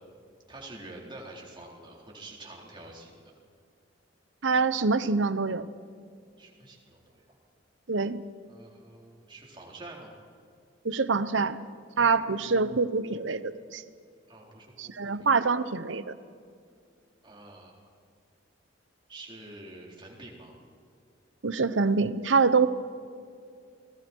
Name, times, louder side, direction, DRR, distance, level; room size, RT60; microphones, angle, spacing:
voice 1, 0.5-3.3 6.4-7.4 8.5-10.1 14.3-14.9 17.2-17.9 19.1-20.5, right 2 dB, 25° right, -2 dB, 4.2 m, -47 dB
voice 2, 4.4-5.7 7.9-8.2 10.8-11.6 12.0-13.8 14.8-16.1 21.4-22.7, right 4 dB, 75° right, 14 dB, 0.9 m, -25 dB
29.0 x 19.5 x 4.6 m, 2.3 s
head